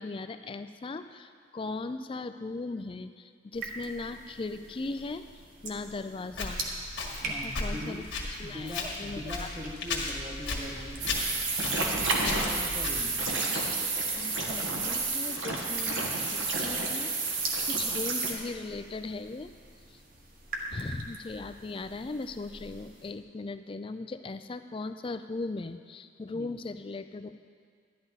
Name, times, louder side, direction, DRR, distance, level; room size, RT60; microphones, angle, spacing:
voice 1, 0.0-5.2 5.6-6.6 7.2-8.0 8.4-9.5 12.2-12.5 14.1-19.5 20.7-27.4, left 3 dB, 25° left, 10 dB, 0.3 m, -38 dB
sound 1, 3.5-23.1, right 2 dB, 45° right, 1.2 m, -44 dB
Walk footsteps, 6.3-13.3, left 3 dB, 65° left, 1.7 m, -36 dB
voice 2, 7.2-8.0 8.4-11.2 12.2-13.2 26.3-26.5, equal, 20° right, -1 dB, 1.1 m, -41 dB
sound 2, 11.0-18.3, right 3 dB, 80° right, 1.5 m, -30 dB
12.0 x 11.0 x 4.0 m, 2.1 s
head